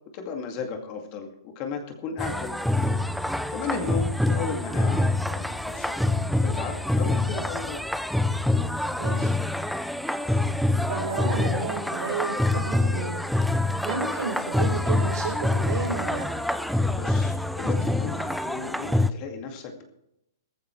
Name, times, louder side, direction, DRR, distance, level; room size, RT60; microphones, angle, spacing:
voice 1, 0.1-2.5 3.0-7.8 16.9-19.8, left 5 dB, 30° left, 3 dB, 2.2 m, -35 dB
sound 1, 2.2-19.1, left 2 dB, ahead, 0.4 m, -26 dB
voice 2, 3.7-4.0 9.0-9.3 10.9-13.2 13.8-16.2, right 5 dB, 65° right, -1 dB, 4.0 m, -32 dB
19.0 x 14.5 x 3.2 m, 0.81 s
hypercardioid pair, 165°, 2 cm